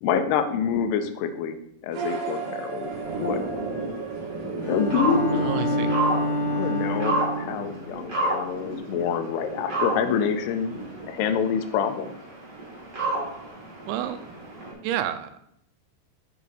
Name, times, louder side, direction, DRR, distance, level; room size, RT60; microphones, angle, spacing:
voice 1, 0.0-1.6 1.8-2.9 3.2-3.4 4.7-5.5 6.5-10.8 11.1-12.1, left 7 dB, 80° left, 8 dB, 2.5 m, -26 dB
sound 1, 1.9-6.7, right 6 dB, 70° right, 2.8 m, -35 dB
sound 2, 2.8-14.7, right 2 dB, 30° right, 2.2 m, -31 dB
Bowed string instrument, 4.6-7.6, left 1 dB, 30° left, 2.0 m, -27 dB
voice 2, 5.3-5.9 13.9-14.2 14.8-15.4, right 11 dB, 85° right, 10 dB, 3.0 m, -30 dB
7.3 x 6.1 x 4.1 m, 0.76 s
omnidirectional pair, 5.2 m